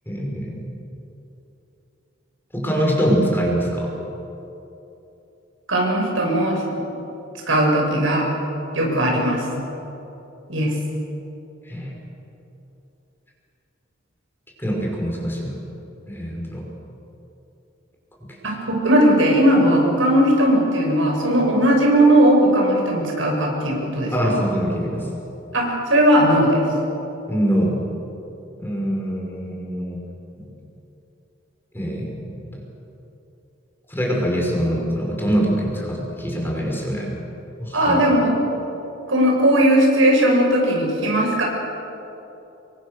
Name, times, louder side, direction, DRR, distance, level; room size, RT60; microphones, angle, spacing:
voice 1, 0.1-0.7 2.5-3.9 11.6-11.9 14.6-15.6 16.1-16.6 18.2-18.3 24.1-25.1 27.3-27.8 28.6-30.0 31.7-32.6 33.9-37.2 37.6-38.0, equal, 10° left, -2 dB, 5.4 m, -24 dB
voice 2, 5.7-6.8 7.5-8.2 8.7-9.4 10.5-10.7 18.4-24.4 25.5-26.6 37.7-38.4 39.1-41.4, right 1 dB, 90° right, 0 dB, 6.6 m, -18 dB
28.0 x 23.0 x 6.7 m, 3.0 s
head